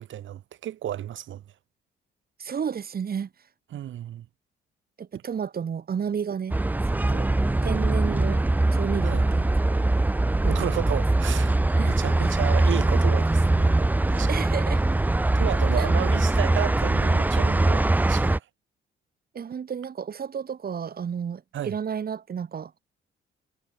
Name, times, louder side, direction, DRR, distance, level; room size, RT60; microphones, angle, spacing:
voice 1, 0.0-1.4 3.7-4.3 9.0-9.3 10.4-11.6 11.9-14.4 15.3-18.4 21.5-21.8, right 12 dB, 75° right, 8.0 m, -33 dB
voice 2, 2.4-3.3 5.0-6.5 7.1-7.3 7.6-8.4 8.7-9.5 10.5-11.0 11.8-12.3 14.3-14.8 15.8-15.9 19.3-22.8, right 7 dB, 50° right, 6.7 m, -32 dB
sound 1, 6.5-18.4, right 2 dB, 10° right, 0.5 m, -22 dB
cardioid pair, 90°, 20 cm